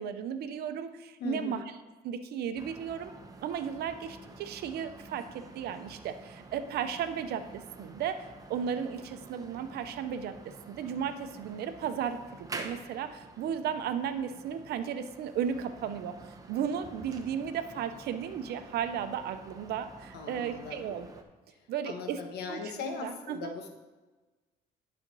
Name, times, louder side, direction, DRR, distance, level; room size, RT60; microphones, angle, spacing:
voice 1, 0.0-1.6 2.0-3.1 3.4-21.1 21.7-22.2 22.5-23.5, right 8 dB, 70° right, 10 dB, 0.7 m, -35 dB
voice 2, 1.2-1.6 20.1-20.8 21.5-23.7, left 5 dB, 75° left, 4 dB, 1.3 m, -39 dB
sound 1, 2.5-21.2, right 3 dB, 20° right, 0.9 m, -49 dB
11.0 x 4.3 x 5.4 m, 1.2 s
cardioid pair, 110°, 17 cm